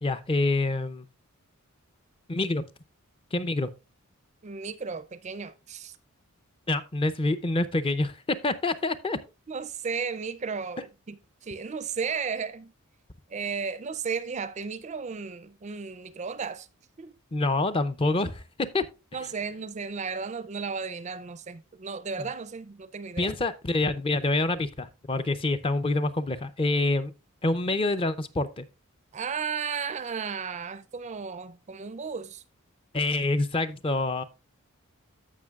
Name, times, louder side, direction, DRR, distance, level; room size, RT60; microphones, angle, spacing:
voice 1, 0.0-1.1 2.3-2.6 3.3-3.7 6.7-9.2 17.3-18.9 23.2-27.1 27.4-28.6 32.9-34.2, left 2 dB, 25° left, 0.5 m, -26 dB
voice 2, 4.4-6.0 9.5-11.2 11.4-12.7 13.3-16.7 17.0-17.1 19.1-23.4 29.1-32.4, right 5 dB, 30° right, 0.4 m, -34 dB
14.5 x 5.7 x 2.3 m
head